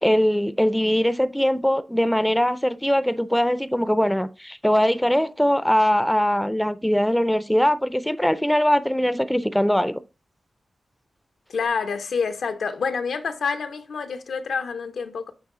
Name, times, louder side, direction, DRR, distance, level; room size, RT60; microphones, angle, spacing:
voice 1, 0.0-10.0, equal, 5° left, 0.4 m, -21 dB
voice 2, 11.5-15.3, left 5 dB, 90° left, 0.7 m, -27 dB
8.9 x 3.1 x 3.7 m
wide cardioid pair, 85°, 0 cm